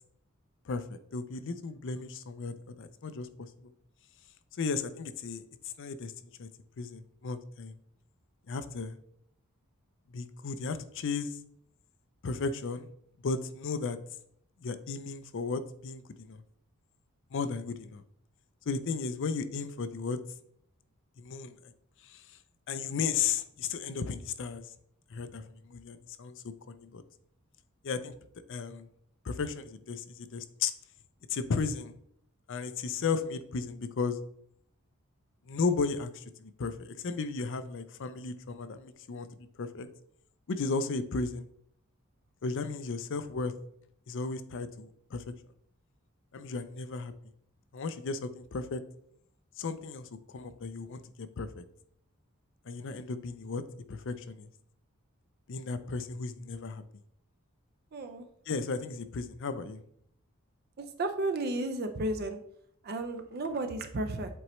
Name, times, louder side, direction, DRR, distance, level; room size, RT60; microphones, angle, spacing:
voice 1, 1.1-3.7 4.6-6.5 6.8-7.7 8.5-8.9 10.1-11.4 12.2-12.9 13.2-14.0 14.6-16.4 17.3-18.0 18.7-20.2 21.2-21.7 22.0-22.2 22.7-24.6 25.1-27.0 27.8-28.1 28.5-28.9 29.2-30.7 31.3-31.9 32.5-34.2 35.5-39.9 40.5-41.4 42.4-43.5 44.1-45.2 46.3-47.1 47.7-48.8 49.6-51.6 52.7-53.6 53.9-54.5 55.5-56.8 58.5-59.8, left 4 dB, 60° left, 12 dB, 0.5 m, -35 dB
voice 2, 57.9-58.2 60.8-62.4 62.8-64.3, right 2 dB, 45° right, 7 dB, 0.5 m, -33 dB
7.7 x 4.1 x 3.1 m, 0.69 s
head